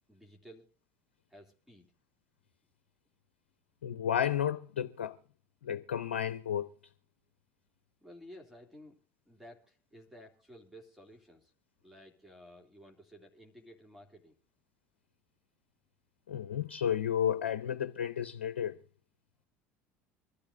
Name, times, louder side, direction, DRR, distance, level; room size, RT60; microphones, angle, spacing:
voice 1, 0.1-0.7 1.3-1.9 8.0-9.0 9.3-11.5 11.8-14.4, equal, 5° right, 2.5 m, -54 dB
voice 2, 3.8-5.2 5.6-6.7 16.3-18.8, left 9 dB, 90° left, 0.5 m, -32 dB
25.0 x 12.0 x 2.5 m
hypercardioid pair, 80°, 6 cm